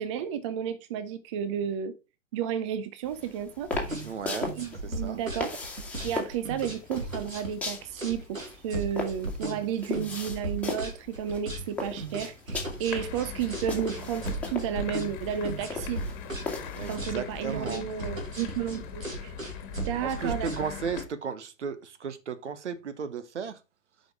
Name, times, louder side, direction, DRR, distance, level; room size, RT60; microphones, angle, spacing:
voice 1, 0.0-1.9 2.3-4.0 4.6-5.5 6.0-16.0 16.9-19.3 19.8-20.5, right 8 dB, 25° right, 0.5 m, -32 dB
sound 1, 3.0-17.0, left 3 dB, 5° left, 1.8 m, -38 dB
sound 2, 3.6-21.0, right 1 dB, 90° right, 2.1 m, -36 dB
voice 2, 4.0-4.6 4.8-5.2 16.7-17.9 19.9-23.6, right 6 dB, 60° right, 1.2 m, -35 dB
sound 3, 12.8-21.0, left 6 dB, 30° left, 1.6 m, -41 dB
7.7 x 5.4 x 4.6 m
figure-of-eight pair, 115°, 39 cm